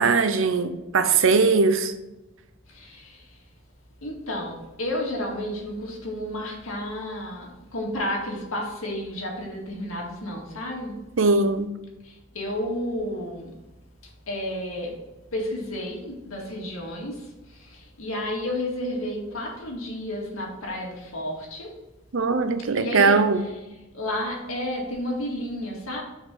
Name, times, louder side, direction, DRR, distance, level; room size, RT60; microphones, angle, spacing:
voice 1, 0.0-1.9 11.2-11.7 22.1-23.4, right 4 dB, 70° right, 10 dB, 0.7 m, -20 dB
voice 2, 2.7-3.4 4.0-11.0 12.0-13.5 14.0-15.0 15.3-21.7 22.8-23.2 23.9-26.0, left 1 dB, 80° left, -1 dB, 2.0 m, -31 dB
6.3 x 4.7 x 4.9 m, 1.0 s
head